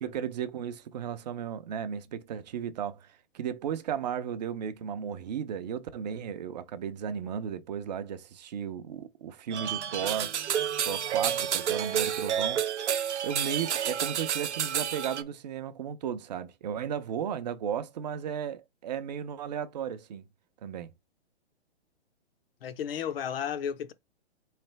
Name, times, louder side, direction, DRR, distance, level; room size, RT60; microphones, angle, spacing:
voice 1, 0.0-3.1 3.3-10.6 10.9-12.6 13.2-20.2 20.6-20.9, right 8 dB, 40° right, 0.5 m, -35 dB
sound 1, 9.5-15.2, right 9 dB, 85° right, 0.7 m, -30 dB
voice 2, 22.6-23.9, left 8 dB, 55° left, 0.7 m, -33 dB
3.7 x 3.2 x 3.2 m
hypercardioid pair, 145°, 34 cm